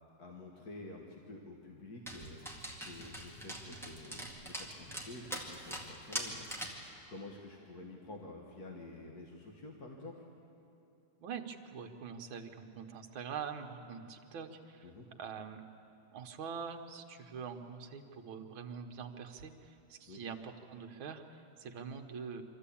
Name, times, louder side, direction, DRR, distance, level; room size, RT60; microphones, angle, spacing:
voice 1, 0.2-2.4 2.8-6.5 7.1-10.2 14.8-15.1 20.1-20.2, left 2 dB, 50° left, 0 dB, 1.8 m, -49 dB
Dog, 2.1-6.9, right 1 dB, ahead, 1.9 m, -43 dB
voice 2, 11.2-14.9 15.2-15.6 16.1-22.4, right 6 dB, 70° right, 5 dB, 1.9 m, -44 dB
24.5 x 14.0 x 8.6 m, 2.7 s
omnidirectional pair, 2.3 m